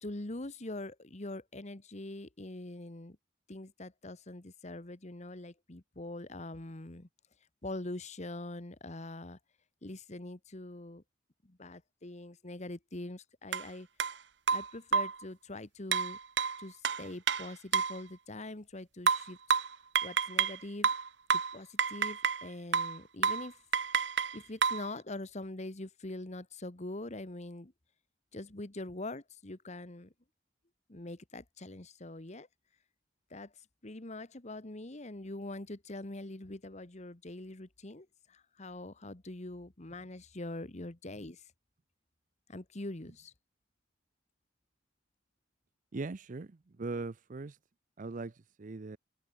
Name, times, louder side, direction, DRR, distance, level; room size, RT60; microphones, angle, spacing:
voice 1, 0.0-3.2 3.5-7.1 7.6-9.4 9.8-11.0 11.4-13.9 14.5-16.2 16.6-19.4 20.0-20.9 21.3-23.6 24.3-27.7 28.3-30.1 30.9-32.5 33.3-41.5 42.5-43.3, left 2 dB, 40° left, 1.4 m, -43 dB
sound 1, 13.5-13.7 14.0-14.1 14.5-15.2 15.9-18.0 19.1-20.6 20.8-22.5 22.7-23.0 23.2-23.5 23.7-24.9, right 6 dB, 65° right, 1.3 m, -29 dB
voice 2, 45.9-46.5 46.8-47.6 48.0-48.3 48.6-49.0, right 3 dB, 45° right, 0.6 m, -39 dB
head